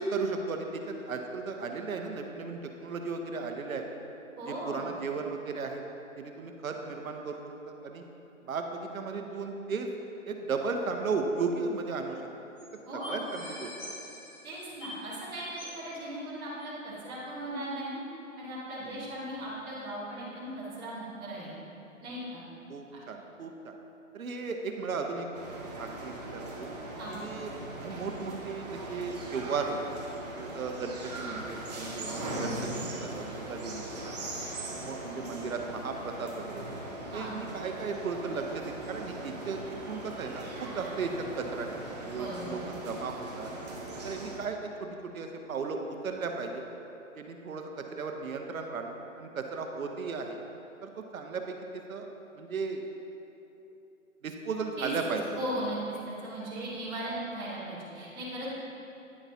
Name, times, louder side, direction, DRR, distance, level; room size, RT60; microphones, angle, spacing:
voice 1, 0.0-3.8 4.5-5.8 6.2-7.4 7.7-8.0 8.5-9.9 10.3-12.3 13.1-13.9 18.8-19.1 22.7-23.7 24.1-25.3 25.8-26.7 27.2-27.5 27.8-30.0 30.4-34.3 34.8-36.6 37.1-39.6 39.9-41.8 42.1-43.5 44.0-46.6 47.2-50.4 50.8-52.1 52.4-52.8 54.2-55.2, right 4 dB, 80° right, 4 dB, 0.8 m, -35 dB
voice 2, 4.4-4.9 12.9-13.3 14.4-18.0 18.4-21.5 22.0-22.4 27.0-27.3 37.1-37.4 42.1-42.8 54.7-58.5, right 1 dB, 10° right, -10 dB, 1.1 m, -38 dB
sound 1, 11.7-11.8 12.0-12.1 12.6-12.7 13.0-15.2 15.6-15.8 16.6-16.7, left 1 dB, 25° left, 1.3 m, -45 dB
sound 2, 25.3-44.4, right 1 dB, 30° right, 0.7 m, -40 dB
9.5 x 6.0 x 2.7 m, 2.9 s
hypercardioid pair, 155°, 41 cm